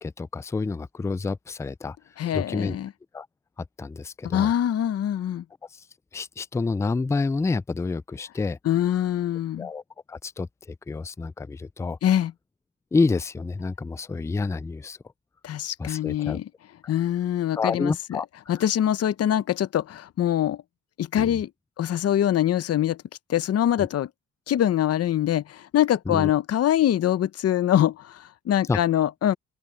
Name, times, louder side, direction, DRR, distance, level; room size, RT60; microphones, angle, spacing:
voice 1, 0.0-2.0 2.3-2.8 3.1-3.3 3.8-4.5 5.7-5.8 6.1-8.6 9.6-9.8 10.1-12.0 12.9-15.0 15.8-16.4 17.6-18.3 18.5-18.6 21.1-21.4 23.8-23.9 26.1-26.3 28.7-28.8, left 4 dB, 10° left, 0.3 m, -28 dB
voice 2, 2.2-2.9 4.2-5.4 8.6-9.7 12.0-12.3 15.4-16.5 16.9-18.2 18.5-20.6 21.0-21.5 21.8-23.0 23.3-24.1 24.5-29.3, left 11 dB, 55° left, 0.8 m, -24 dB
open air
cardioid pair, 90°, 30 cm